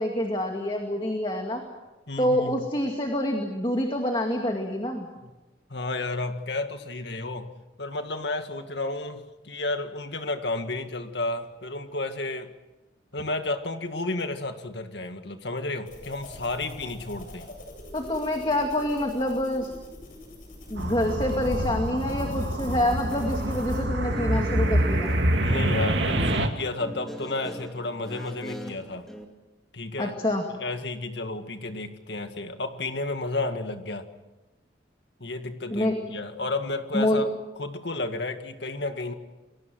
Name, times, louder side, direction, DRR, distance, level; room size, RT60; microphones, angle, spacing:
voice 1, 0.0-1.6 2.2-5.1 17.9-19.7 20.7-25.1 30.0-30.4 35.7-36.0 36.9-37.2, left 1 dB, 25° left, 3 dB, 2.2 m, -26 dB
voice 2, 2.1-2.7 5.2-5.3 5.7-12.5 13.1-17.5 25.4-29.1 29.7-30.1 30.6-34.1 35.2-37.3 37.6-39.1, left 2 dB, 65° left, 7 dB, 2.0 m, -32 dB
sound 1, 15.9-23.8, left 1 dB, 45° left, 7.8 m, -42 dB
Sci-Fi take-off, 20.8-26.5, right 1 dB, 70° right, 2.3 m, -26 dB
Guitar, 23.9-29.3, equal, ahead, 2.6 m, -39 dB
29.5 x 22.0 x 6.3 m, 1.1 s
head